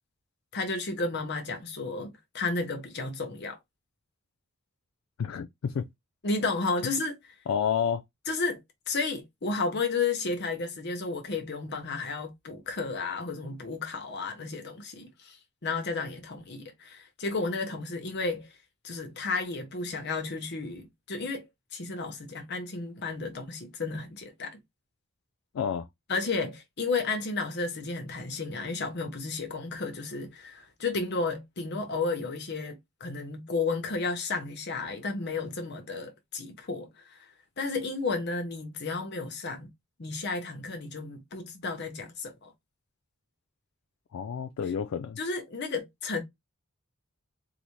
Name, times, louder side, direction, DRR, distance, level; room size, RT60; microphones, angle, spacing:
voice 1, 0.5-3.6 6.2-7.3 8.3-8.6 8.9-15.4 15.6-18.5 18.8-24.6 26.1-37.3 37.6-39.7 40.0-42.5 45.2-46.2, left 3 dB, 50° left, 0.8 m, -32 dB
voice 2, 5.2-5.9 7.5-8.0 25.5-25.9 44.1-45.2, left 7 dB, 70° left, 0.3 m, -29 dB
4.0 x 2.1 x 3.0 m
head